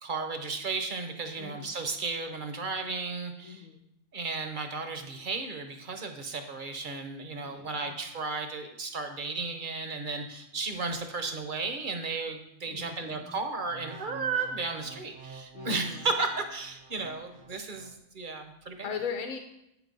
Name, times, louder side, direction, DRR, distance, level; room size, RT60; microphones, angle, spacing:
voice 1, 0.0-3.7 4.1-19.0, right 3 dB, 45° right, 6 dB, 0.9 m, -34 dB
voice 2, 1.4-1.7 3.4-3.9 7.4-7.9 12.7-13.4 15.5-16.1 18.8-19.4, left 6 dB, 75° left, 5 dB, 1.1 m, -39 dB
sound 1, 13.6-18.0 18.5-18.7, right 4 dB, 65° right, 1.1 m, -49 dB
8.2 x 5.0 x 5.3 m, 0.82 s
omnidirectional pair, 1.4 m